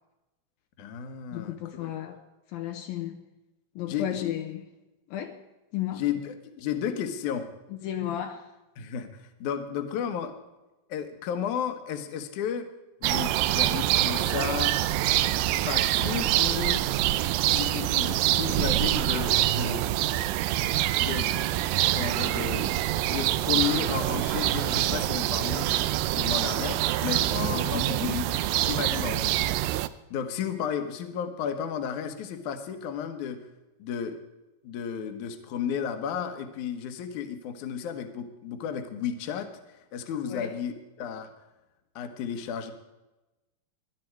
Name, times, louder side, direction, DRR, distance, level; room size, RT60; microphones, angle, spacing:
voice 1, 0.8-1.9 3.9-4.3 5.9-7.5 8.8-10.3 10.9-12.7 13.0-14.8 15.5-16.8 17.4-19.9 21.0-21.6 21.9-22.8 23.1-25.7 26.1-27.3 27.5-27.8 28.6-29.5 30.1-33.4 33.8-34.2 34.6-39.5 39.9-41.3 42.0-42.7, left 8 dB, 65° left, 8 dB, 2.3 m, -33 dB
voice 2, 1.3-2.2 2.5-3.2 3.8-4.7 5.1-5.4 5.7-6.0 7.7-8.5 27.3-28.5 40.3-40.5, left 11 dB, 80° left, 5 dB, 2.5 m, -33 dB
sound 1, 13.0-29.9, right 14 dB, 80° right, 2.1 m, -25 dB
19.5 x 11.5 x 4.7 m, 1.0 s
omnidirectional pair, 4.5 m